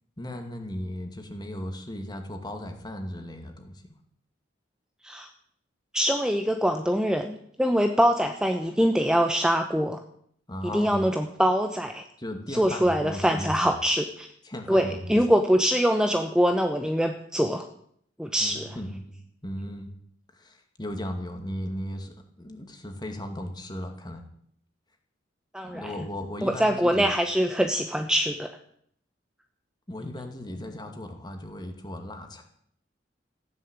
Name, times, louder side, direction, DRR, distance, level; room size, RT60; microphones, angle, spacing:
voice 1, 0.2-3.8 10.5-11.0 12.2-13.8 14.4-15.1 18.4-19.1 19.4-19.9 20.3-24.2 25.6-27.2 29.9-32.4, left 1 dB, 20° left, 5 dB, 2.4 m, -36 dB
voice 2, 5.9-10.0 10.7-12.0 12.5-14.3 14.7-17.7 18.2-18.7 25.5-25.9 26.4-28.5, equal, 5° right, 5 dB, 0.9 m, -24 dB
15.5 x 10.5 x 8.2 m, 0.65 s
head